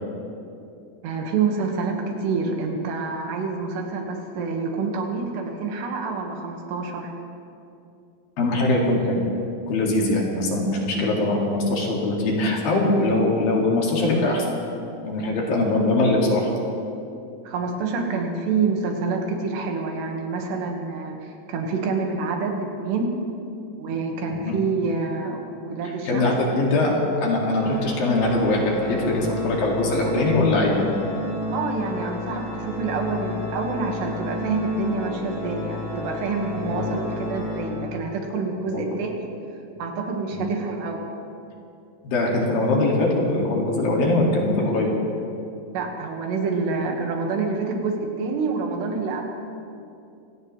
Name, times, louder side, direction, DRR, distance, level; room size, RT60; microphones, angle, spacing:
voice 1, 1.0-7.1 17.5-21.2 21.5-23.1 23.8-26.3 31.5-39.3 39.8-41.0 45.7-49.2, right 4 dB, 80° right, 2 dB, 3.7 m, -27 dB
voice 2, 8.4-9.2 9.7-14.5 15.0-16.5 24.4-24.6 26.1-30.9 36.7-37.0 38.7-38.8 40.3-40.5 42.0-44.9, left 2 dB, 60° left, -2 dB, 3.8 m, -22 dB
Organ, 27.5-38.3, left 2 dB, 25° right, 1.1 m, -31 dB
25.5 x 17.5 x 3.2 m, 2.6 s
omnidirectional pair, 4.8 m